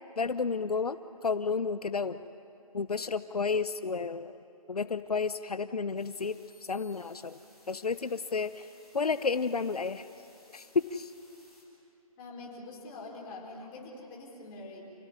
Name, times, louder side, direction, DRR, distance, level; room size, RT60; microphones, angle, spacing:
voice 1, 0.2-1.0 1.2-2.2 2.7-4.4 4.7-6.4 6.7-7.4 7.7-8.7 8.9-10.0 10.5-11.1, left 5 dB, 80° left, 12 dB, 0.9 m, -31 dB
sound 1, 6.0-11.6, left 1 dB, ahead, 3.9 m, -61 dB
voice 2, 12.2-14.8, left 2 dB, 20° left, -3 dB, 4.4 m, -44 dB
28.5 x 18.5 x 9.9 m, 2.9 s
figure-of-eight pair, 160°, 19 cm